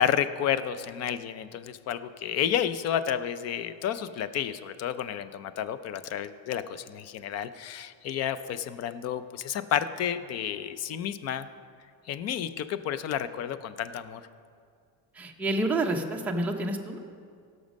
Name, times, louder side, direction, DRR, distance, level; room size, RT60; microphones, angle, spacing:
voice 1, 0.0-11.5 12.1-14.2, left 9 dB, 35° left, 13 dB, 0.4 m, -31 dB
voice 2, 15.2-17.0, right 2 dB, 5° right, 0 dB, 0.6 m, -28 dB
17.5 x 6.3 x 5.2 m, 2.2 s
cardioid pair, 145°, 50 cm